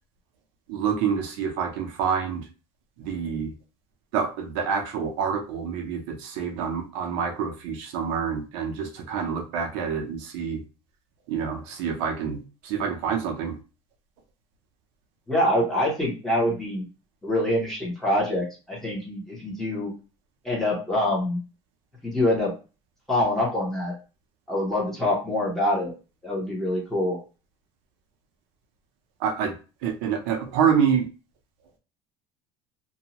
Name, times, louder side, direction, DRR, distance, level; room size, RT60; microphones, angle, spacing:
voice 1, 0.7-2.5 3.0-3.5 4.1-10.6 11.3-13.6 29.2-29.5 29.8-31.1, right 7 dB, 65° right, 4 dB, 0.6 m, -27 dB
voice 2, 15.3-16.8 17.2-19.9 20.4-21.4 22.0-22.5 23.1-23.9 24.5-25.9 26.2-27.2, left 1 dB, 5° left, -5 dB, 0.8 m, -25 dB
2.7 x 2.2 x 2.8 m, 0.32 s
cardioid pair, 180°, 14 cm